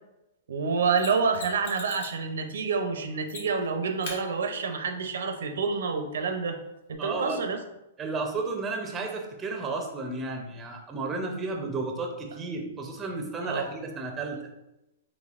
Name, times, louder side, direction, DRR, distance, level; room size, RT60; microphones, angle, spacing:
voice 1, 0.5-6.6 6.9-7.6 13.4-13.7, right 5 dB, 85° right, 6 dB, 0.5 m, -28 dB
Mechanisms, 1.0-2.2 3.3-3.7 4.0-4.2 6.9-7.0, left 3 dB, 70° left, 1.2 m, -40 dB
voice 2, 7.0-7.5 8.0-14.4, right 3 dB, 15° right, 3 dB, 0.5 m, -33 dB
4.0 x 3.1 x 2.4 m, 0.90 s
hypercardioid pair, 155°, 0 cm